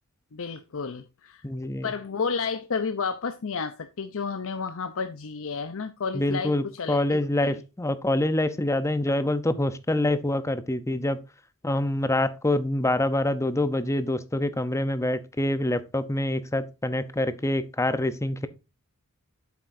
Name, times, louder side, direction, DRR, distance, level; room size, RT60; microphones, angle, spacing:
voice 1, 0.3-1.4 1.8-6.5 6.8-7.5, left 5 dB, 65° left, 0.7 m, -31 dB
voice 2, 1.4-1.9 6.1-11.2 11.6-18.5, left 1 dB, 15° left, 0.7 m, -26 dB
8.5 x 7.6 x 2.6 m
head